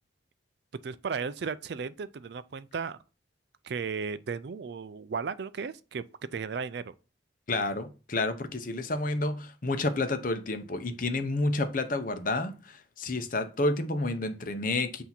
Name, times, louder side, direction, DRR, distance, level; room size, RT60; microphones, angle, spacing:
voice 1, 0.8-3.0 3.6-6.0 6.3-6.9, right 5 dB, 55° right, 0.4 m, -35 dB
voice 2, 7.5-15.0, left 2 dB, 45° left, 0.7 m, -30 dB
8.2 x 2.8 x 5.8 m
head